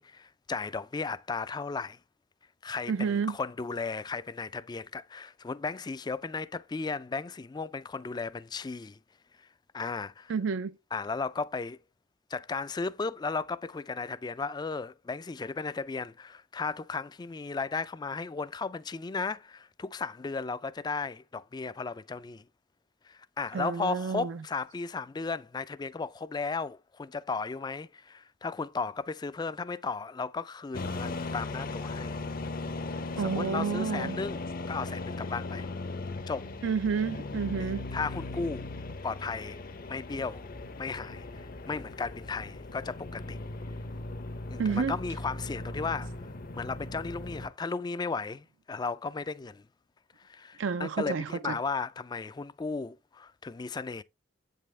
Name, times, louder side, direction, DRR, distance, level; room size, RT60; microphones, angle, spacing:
voice 1, 0.0-2.0 2.6-9.0 9.7-10.3 10.9-11.8 12.3-22.4 23.1-32.2 33.1-35.7 36.3-36.5 37.6-38.7 39.0-39.6 39.9-40.5 40.8-43.4 44.5-46.1 46.6-49.6 50.2-54.0, left 4 dB, 20° left, 0.3 m, -35 dB
voice 2, 2.9-3.4 10.3-10.8 23.5-24.4 33.2-34.2 36.6-37.9 44.6-45.0 50.6-51.6, right 5 dB, 70° right, 0.4 m, -30 dB
sound 1, 30.7-47.5, left 2 dB, 50° left, 0.7 m, -38 dB
8.3 x 5.4 x 3.2 m
head